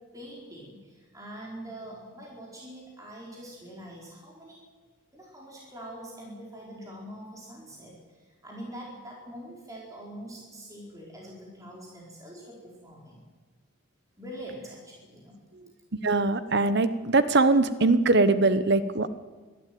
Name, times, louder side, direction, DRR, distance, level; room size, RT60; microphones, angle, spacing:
voice 1, 0.1-4.6 5.1-13.2 14.2-15.3, right 1 dB, 15° right, -3 dB, 4.3 m, -44 dB
voice 2, 16.0-19.1, right 3 dB, 50° right, 13 dB, 1.0 m, -22 dB
22.5 x 13.0 x 9.4 m, 1.4 s
head